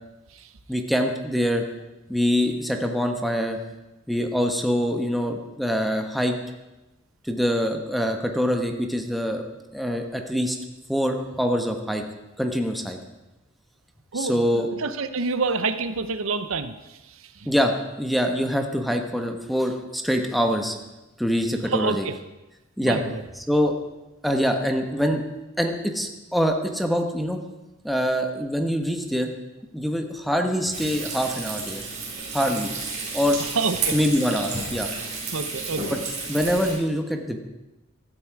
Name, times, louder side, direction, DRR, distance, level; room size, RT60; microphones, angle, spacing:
voice 1, 0.7-1.6 2.1-3.6 4.1-6.4 7.2-9.4 9.7-10.6 10.9-12.0 12.4-13.0 14.1-14.7 17.5-20.8 21.2-22.1 22.8-23.0 23.5-23.7 24.2-25.2 25.6-27.4 27.8-29.3 29.7-31.8 32.3-32.7 33.1-33.4 33.9-34.9 35.9-36.0 36.3-37.4, equal, ahead, 3 dB, 1.3 m, -24 dB
voice 2, 14.1-17.5 21.7-22.1 22.8-23.2 33.4-34.0 35.3-35.8, right 4 dB, 70° right, 10 dB, 0.8 m, -28 dB
Frying (food), 30.7-36.8, right 4 dB, 35° right, 4.4 m, -32 dB
15.5 x 13.0 x 4.8 m, 1.0 s
head